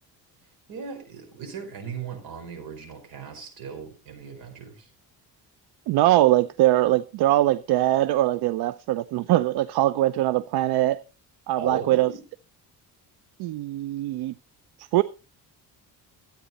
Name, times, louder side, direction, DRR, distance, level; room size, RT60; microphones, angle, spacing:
voice 1, 0.7-4.9 11.6-12.2, right 6 dB, 65° right, 4.5 m, -37 dB
voice 2, 5.9-11.0 11.5-12.1 13.4-14.3 14.9-15.0, right 15 dB, 85° right, 0.6 m, -22 dB
13.5 x 9.0 x 4.1 m
cardioid pair, 140°, 38 cm